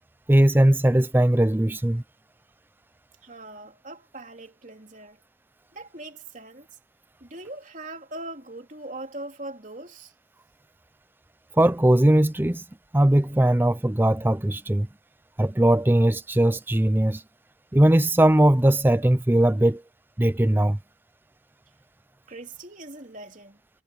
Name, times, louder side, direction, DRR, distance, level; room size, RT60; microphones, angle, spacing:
voice 1, 0.3-2.0 11.6-12.6 12.9-14.9 15.4-17.2 17.7-19.8 20.2-20.8, right 1 dB, 10° right, 0.5 m, -19 dB
voice 2, 3.2-5.2 5.7-6.7 7.2-10.1 22.3-23.6, right 2 dB, 40° right, 3.3 m, -40 dB
head